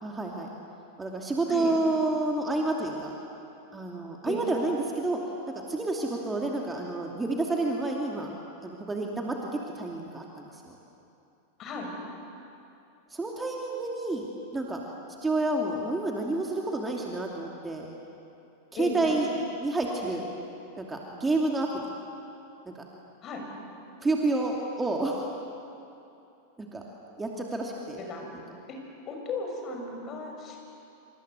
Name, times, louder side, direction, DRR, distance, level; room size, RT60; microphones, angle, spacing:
voice 1, 0.0-0.5 1.0-3.1 3.7-5.2 5.7-8.3 8.6-10.8 13.1-14.2 14.5-14.8 15.2-17.9 18.7-19.3 19.6-20.3 20.8-21.9 24.0-25.3 26.6-26.8 27.2-28.0, right 2 dB, 10° right, 0 dB, 2.7 m, -29 dB
voice 2, 11.6-11.9 18.8-19.1 23.2-23.5 28.0-28.3 29.1-30.6, left 3 dB, 30° left, 2 dB, 6.4 m, -35 dB
27.0 x 26.0 x 8.1 m, 2.8 s
figure-of-eight pair, 90°, 0 cm